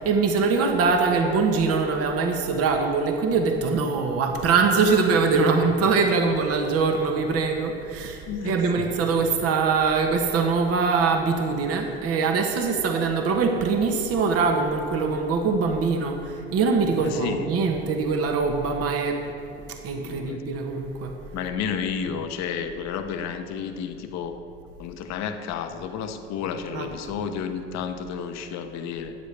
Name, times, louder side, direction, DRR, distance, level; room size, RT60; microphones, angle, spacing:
voice 1, 0.0-19.2 19.7-21.2 26.7-26.9, right 4 dB, 50° right, 3 dB, 1.2 m, -23 dB
voice 2, 8.3-8.9 17.0-17.5 19.9-20.6 21.3-24.4 24.8-29.2, left 7 dB, 60° left, 7 dB, 1.0 m, -31 dB
13.0 x 9.3 x 3.4 m, 2.5 s
hypercardioid pair, 65°, 31 cm